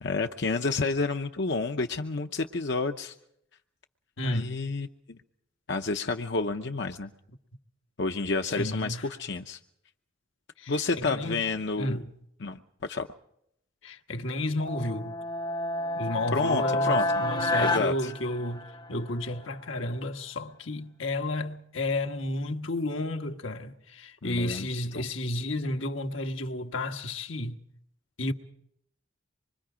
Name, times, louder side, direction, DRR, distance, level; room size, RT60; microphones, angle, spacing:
voice 1, 0.0-3.2 4.2-5.2 5.7-7.1 8.0-9.6 10.7-12.0 12.4-13.1 16.3-17.2 17.6-18.1 24.2-24.7 24.9-25.0, left 3 dB, 60° left, 0.8 m, -30 dB
voice 2, 4.2-4.5 8.5-9.1 10.6-11.5 11.8-12.1 13.8-15.2 15.9-27.6 28.2-28.3, left 1 dB, 80° left, 1.4 m, -32 dB
sound 1, 14.6-19.0, left 2 dB, 25° left, 0.8 m, -29 dB
26.0 x 23.5 x 5.0 m
head